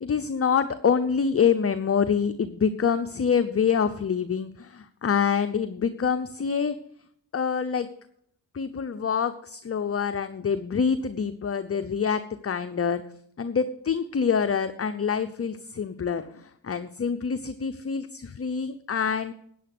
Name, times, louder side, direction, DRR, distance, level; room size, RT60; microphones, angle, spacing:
voice 1, 0.0-6.7 7.3-7.9 8.5-13.0 13.4-19.3, left 6 dB, 30° left, 9 dB, 0.7 m, -26 dB
10.0 x 9.4 x 6.1 m, 0.66 s
cardioid pair, 55°, 46 cm